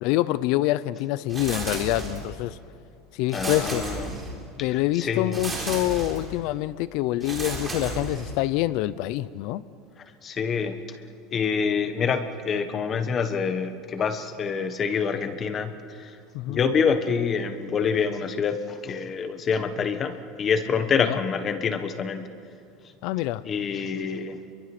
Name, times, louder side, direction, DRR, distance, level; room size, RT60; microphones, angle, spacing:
voice 1, 0.0-2.6 3.1-3.8 4.6-9.6 16.3-16.6 21.0-21.2 23.0-23.5, left 16 dB, 55° left, 0.7 m, -26 dB
sound 1, 1.3-2.4 3.3-4.5 5.3-6.3 7.2-8.5, right 2 dB, 15° right, 3.9 m, -33 dB
voice 2, 3.3-4.1 5.0-5.4 10.2-11.0 11.3-16.1 16.5-22.3 23.5-24.5, left 6 dB, 25° left, 1.3 m, -26 dB
29.5 x 23.0 x 6.1 m
supercardioid pair, 160°, 0 cm